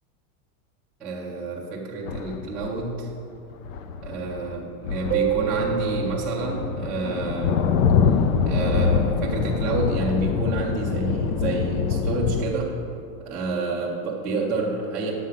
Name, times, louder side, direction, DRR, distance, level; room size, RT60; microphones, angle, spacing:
voice 1, 1.0-3.1 4.0-7.7 8.4-12.8 13.2-15.1, right 2 dB, ahead, -12 dB, 0.4 m, -29 dB
sound 1, 2.1-2.8 3.5-4.6 4.8-12.4, left 6 dB, 60° left, 0.7 m, -25 dB
Keyboard (musical), 5.1-7.8, right 12 dB, 85° right, 0.9 m, -29 dB
11.0 x 7.4 x 5.7 m, 2.6 s
supercardioid pair, 175°, 46 cm